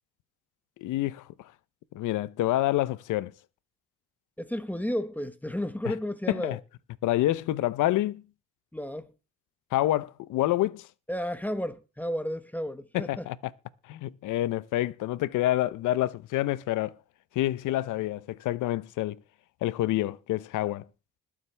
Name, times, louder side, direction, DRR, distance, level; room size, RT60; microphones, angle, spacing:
voice 1, 0.8-1.2 1.9-3.3 5.8-5.9 6.3-6.6 7.0-8.2 9.7-10.9 12.9-13.4 13.9-16.9 17.3-19.2 19.6-20.8, left 15 dB, 85° left, 0.7 m, -27 dB
voice 2, 4.4-6.6 8.7-9.1 11.1-13.3, equal, 5° left, 1.1 m, -32 dB
21.0 x 7.4 x 3.4 m
cardioid pair, 90°, 30 cm